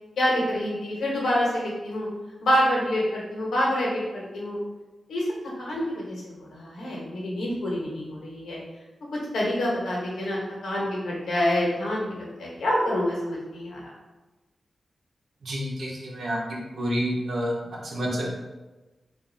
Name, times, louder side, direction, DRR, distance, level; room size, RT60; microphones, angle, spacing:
voice 1, 0.2-2.1 2.4-4.6 5.1-5.3 5.6-8.6 9.3-13.8, equal, 90° left, -4 dB, 1.1 m, -27 dB
voice 2, 15.4-16.4 16.8-17.5 17.8-18.3, equal, 75° right, -3 dB, 0.9 m, -28 dB
3.5 x 2.6 x 3.9 m, 1.1 s
cardioid pair, 65°, 0 cm